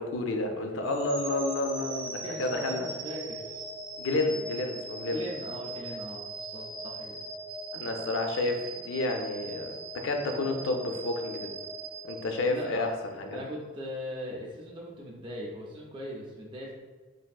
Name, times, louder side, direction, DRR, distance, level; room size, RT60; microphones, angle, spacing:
voice 1, 0.0-2.9 4.0-5.2 7.7-11.5 12.0-12.9 13.2-13.4, left 2 dB, 90° left, 4 dB, 0.4 m, -30 dB
sound 1, 0.8-12.9, right 2 dB, 85° right, 0.6 m, -40 dB
voice 2, 2.2-3.6 5.1-7.1 12.5-12.9 13.3-16.7, equal, 25° right, -2 dB, 0.4 m, -40 dB
3.3 x 2.5 x 2.3 m, 1.3 s
head